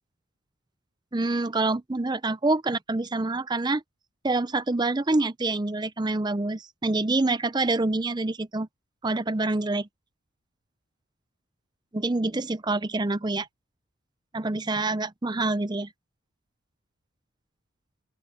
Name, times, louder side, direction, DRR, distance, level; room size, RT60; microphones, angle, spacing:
voice 1, 1.1-3.8 4.2-8.7 9.0-9.9 11.9-13.5 14.3-15.9, right 2 dB, 20° right, 0.5 m, -26 dB
open air
head